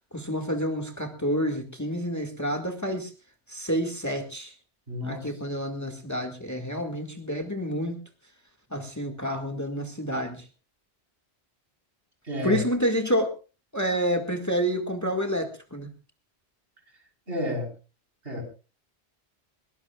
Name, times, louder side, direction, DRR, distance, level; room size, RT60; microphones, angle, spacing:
voice 1, 0.1-3.1 3.5-4.5 5.0-8.0 8.7-10.4 12.4-13.3 13.7-15.9, equal, 15° left, 5 dB, 2.0 m, -28 dB
voice 2, 4.9-5.3 12.2-12.6 17.3-17.7 18.2-18.4, left 1 dB, 60° right, 2 dB, 4.6 m, -30 dB
21.0 x 19.5 x 2.4 m, 0.33 s
omnidirectional pair, 1.1 m